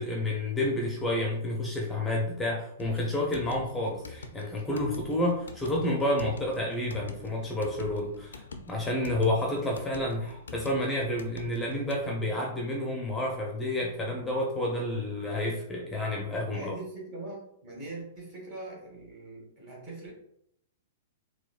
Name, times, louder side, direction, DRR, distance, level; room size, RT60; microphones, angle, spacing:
voice 1, 0.0-16.7, left 1 dB, 10° left, -1 dB, 0.6 m, -30 dB
sound 1, 2.8-12.1, left 4 dB, 75° left, 0.4 m, -46 dB
voice 2, 16.5-20.1, right 2 dB, 40° right, -2 dB, 1.5 m, -42 dB
3.9 x 2.2 x 2.4 m, 0.72 s
figure-of-eight pair, 105°, 0 cm